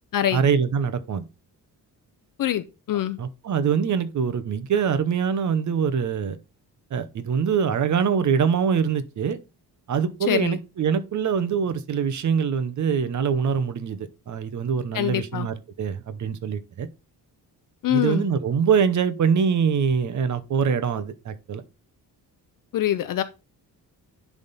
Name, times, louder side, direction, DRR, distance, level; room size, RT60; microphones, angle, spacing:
voice 1, 0.3-1.3 3.2-6.4 6.9-9.4 9.9-16.9 17.9-21.6, right 7 dB, 50° right, 0.8 m, -24 dB
voice 2, 2.4-3.2 10.2-10.6 14.9-15.5 17.8-18.3 22.7-23.2, left 12 dB, 60° left, 0.6 m, -24 dB
10.5 x 3.6 x 4.1 m
wide cardioid pair, 155°, 38 cm